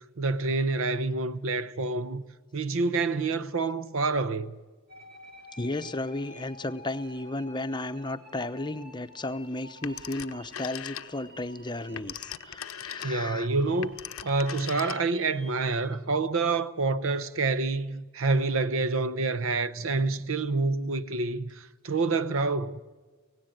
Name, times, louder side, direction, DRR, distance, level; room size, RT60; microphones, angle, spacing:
voice 1, 0.2-2.2 2.5-4.5 13.0-14.0 14.2-22.8, right 3 dB, 75° right, 0.8 m, -27 dB
sound 1, 4.9-15.9, equal, 50° right, 3.2 m, -51 dB
voice 2, 5.6-13.5, left 2 dB, 20° left, 0.8 m, -34 dB
Telephone, 9.8-11.4 11.7-15.3, left 10 dB, 85° left, 0.6 m, -40 dB
18.0 x 16.5 x 9.0 m
head